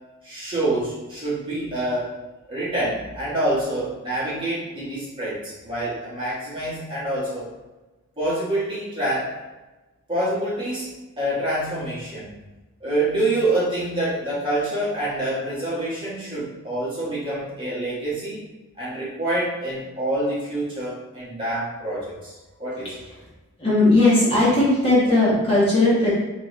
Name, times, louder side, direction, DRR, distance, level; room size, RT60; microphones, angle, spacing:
voice 1, 0.2-2.1 2.5-7.5 8.2-9.3 10.1-12.3 12.8-18.4 18.8-22.9, right 1 dB, 20° right, -9 dB, 1.4 m, -26 dB
voice 2, 23.6-26.1, left 2 dB, 25° left, -8 dB, 1.3 m, -17 dB
4.4 x 3.2 x 3.2 m, 1.1 s
head